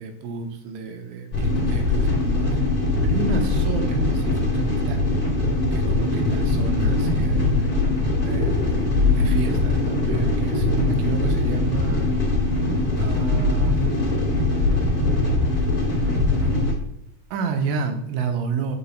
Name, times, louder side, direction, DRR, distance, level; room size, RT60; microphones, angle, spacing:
voice 1, 0.0-2.6 3.0-5.0 5.7-7.7 8.2-12.1 13.0-13.8 15.6-15.7 15.9-16.9 17.3-18.8, right 5 dB, 80° right, 4 dB, 3.2 m, -30 dB
sound 1, 1.3-16.7, left 2 dB, 25° left, 2.5 m, -21 dB
11.0 x 5.4 x 2.3 m, 0.77 s
omnidirectional pair, 5.8 m